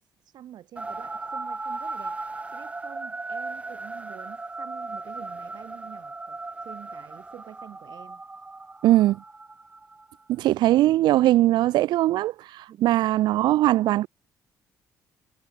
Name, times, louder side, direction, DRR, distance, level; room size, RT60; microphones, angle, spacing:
voice 1, 0.0-8.2 12.7-13.1, right 11 dB, 70° right, 7.1 m, -47 dB
sound 1, 0.8-10.2, right 3 dB, 15° right, 2.9 m, -37 dB
voice 2, 8.8-9.2 10.3-14.1, right 15 dB, 85° right, 0.8 m, -20 dB
cardioid pair, 120°, 7 cm